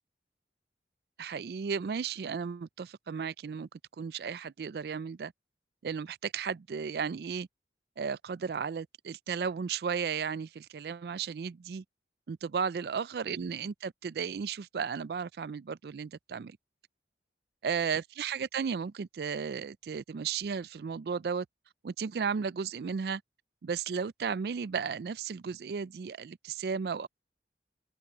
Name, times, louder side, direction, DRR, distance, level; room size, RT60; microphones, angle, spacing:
voice 1, 1.2-3.7 4.0-5.3 5.8-7.5 8.0-11.8 12.3-16.6 17.6-21.5 21.8-23.2 23.6-27.1, right 6 dB, 65° right, 0.4 m, -34 dB
open air
head